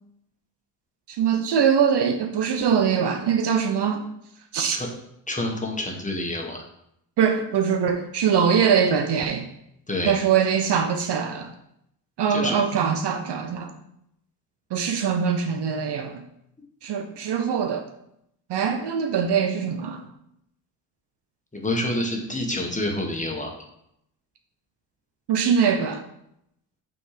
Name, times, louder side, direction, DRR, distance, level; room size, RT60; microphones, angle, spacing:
voice 1, 1.1-4.0 4.5-4.8 7.2-9.5 10.1-11.5 12.2-13.7 14.7-16.2 16.8-17.8 18.5-20.1 25.3-26.0, right 7 dB, 55° right, 6 dB, 0.8 m, -22 dB
voice 2, 5.3-6.6 9.9-10.1 12.3-12.6 21.5-23.6, left 1 dB, 15° left, 1 dB, 1.5 m, -28 dB
6.1 x 3.5 x 5.0 m, 0.77 s
supercardioid pair, 55°, 49 cm